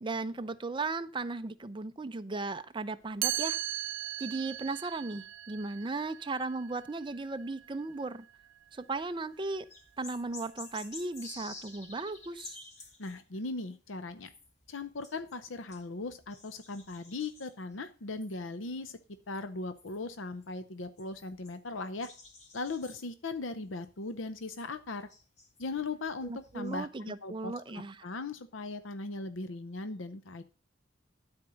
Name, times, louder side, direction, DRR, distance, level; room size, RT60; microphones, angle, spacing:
voice 1, 0.0-3.6 4.2-8.2 8.7-9.7 10.0-12.6 26.2-28.1, right 3 dB, 25° right, 10 dB, 0.6 m, -36 dB
Chime, 3.2-9.1, right 16 dB, 85° right, 0.4 m, -39 dB
sound 1, 8.7-9.1 9.5-26.8, left 3 dB, 35° left, 2.4 m, -52 dB
voice 2, 13.0-14.3 14.7-19.0 19.3-22.1 22.5-25.1 25.6-30.4, left 3 dB, 90° left, 11 dB, 0.7 m, -38 dB
12.5 x 4.5 x 6.3 m, 0.35 s
head